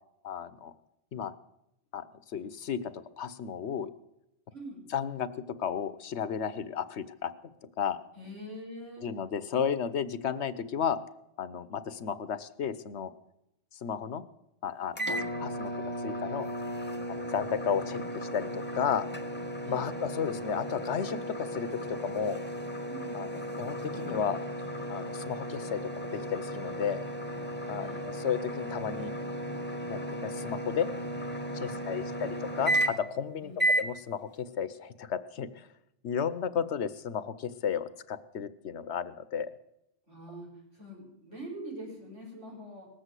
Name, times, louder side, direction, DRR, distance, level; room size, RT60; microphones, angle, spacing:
voice 1, 0.2-0.7 1.1-1.3 1.9-2.0 2.3-3.9 4.9-7.3 7.8-8.0 9.0-11.0 11.4-13.1 13.7-14.2 14.6-16.5 17.1-19.1 19.7-22.4 23.1-23.3 23.6-24.4 24.9-27.0 27.7-29.1 29.9-30.9 31.5-33.5 33.8-35.7 36.0-39.5, left 7 dB, 70° left, 14 dB, 1.1 m, -33 dB
voice 2, 4.5-4.8 8.1-9.1 15.0-15.3 19.6-19.9 22.9-23.3 27.7-28.0 33.4-33.7 40.1-42.9, right 1 dB, 85° right, -3 dB, 6.8 m, -44 dB
sound 1, 14.9-33.2 33.6-33.9, right 1 dB, 10° left, 1.0 m, -34 dB
19.5 x 7.7 x 8.1 m, 0.85 s
omnidirectional pair, 1.2 m